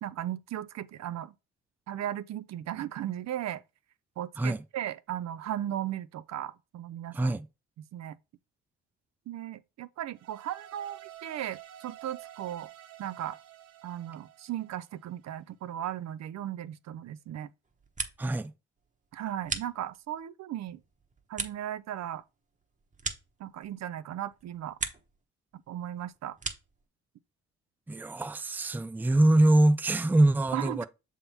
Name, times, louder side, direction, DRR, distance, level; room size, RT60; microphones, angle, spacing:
voice 1, 0.0-1.3 1.9-3.6 4.2-7.4 7.9-8.2 9.3-12.7 13.0-13.4 13.8-17.5 19.1-20.8 21.3-22.2 23.4-24.8 25.7-26.4 30.5-30.9, right 11 dB, 60° right, 0.6 m, -36 dB
voice 2, 7.1-7.5 18.2-18.5 27.9-30.9, right 1 dB, 5° right, 0.4 m, -24 dB
sound 1, 10.1-15.4, right 12 dB, 90° right, 1.4 m, -50 dB
sound 2, 17.6-18.5 18.8-20.2 20.7-23.9 24.3-25.2 25.5-26.8, right 4 dB, 25° right, 1.1 m, -39 dB
6.8 x 3.7 x 4.3 m
cardioid pair, 90°, 30 cm